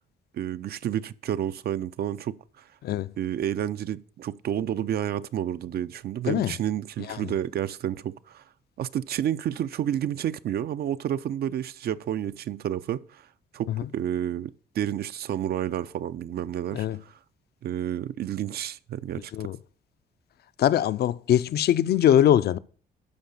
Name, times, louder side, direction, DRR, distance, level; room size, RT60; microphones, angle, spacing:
voice 1, 0.3-2.4 3.2-8.4 8.8-13.3 13.5-17.1 17.6-19.3, right 10 dB, 65° right, 0.6 m, -30 dB
voice 2, 20.6-22.6, left 11 dB, 65° left, 0.6 m, -22 dB
12.0 x 4.9 x 7.0 m
cardioid pair, 105°, 18 cm